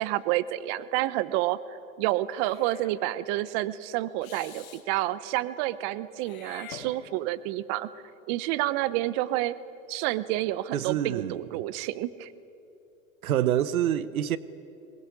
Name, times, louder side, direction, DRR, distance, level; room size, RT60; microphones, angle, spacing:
voice 1, 0.0-7.9 8.3-9.6 9.9-12.3, right 15 dB, 45° right, 0.9 m, -29 dB
Meow / Hiss, 2.3-3.0 4.2-4.8 6.2-7.4, left 7 dB, 75° left, 2.9 m, -46 dB
voice 2, 10.7-11.4 13.2-14.4, right 11 dB, 85° right, 0.9 m, -26 dB
22.0 x 20.5 x 9.6 m
hypercardioid pair, 115°, 41 cm